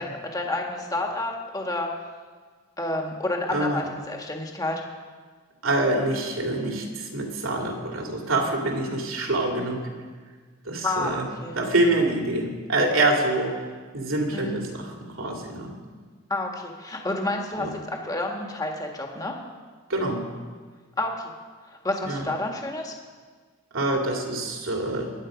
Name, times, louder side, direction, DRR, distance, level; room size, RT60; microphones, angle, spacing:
voice 1, 0.0-1.9 2.8-4.8 10.8-11.1 11.4-11.5 14.3-14.6 16.3-19.3 21.0-21.3 21.8-22.9, left 2 dB, 20° left, 1 dB, 1.8 m, -29 dB
voice 2, 3.5-3.9 5.6-9.9 10.6-11.3 11.5-13.6 13.9-15.7 17.5-17.7 19.9-20.2 22.0-22.3 23.7-25.1, right 2 dB, 85° right, 1 dB, 2.9 m, -26 dB
23.0 x 10.5 x 5.3 m, 1.5 s
head